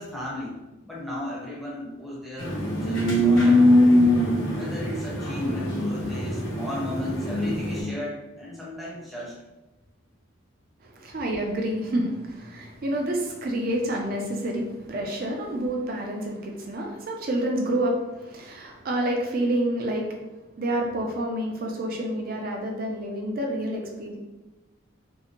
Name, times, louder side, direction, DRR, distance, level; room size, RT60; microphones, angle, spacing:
voice 1, 0.0-3.7 4.6-9.4, left 1 dB, ahead, -6 dB, 0.6 m, -35 dB
sound 1, 2.4-7.8, left 1 dB, 65° left, 0.7 m, -22 dB
voice 2, 10.8-20.2 20.6-24.2, right 1 dB, 45° right, 1 dB, 0.4 m, -28 dB
2.6 x 2.1 x 2.8 m, 1.1 s
head